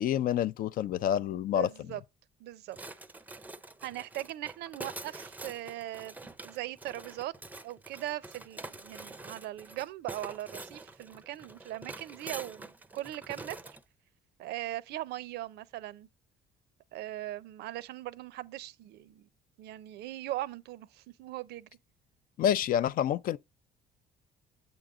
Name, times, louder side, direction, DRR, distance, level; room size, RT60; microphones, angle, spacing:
voice 1, 0.0-1.7 22.4-23.4, left 10 dB, 60° left, 0.4 m, -28 dB
voice 2, 1.2-2.0 2.4-2.8 3.8-7.3 7.6-13.8 14.4-16.1 16.9-19.3 19.6-21.7, right 15 dB, 80° right, 0.6 m, -40 dB
sound 1, 2.7-13.8, right 2 dB, 10° right, 0.5 m, -46 dB
8.0 x 3.8 x 4.8 m
cardioid pair, 110°, 17 cm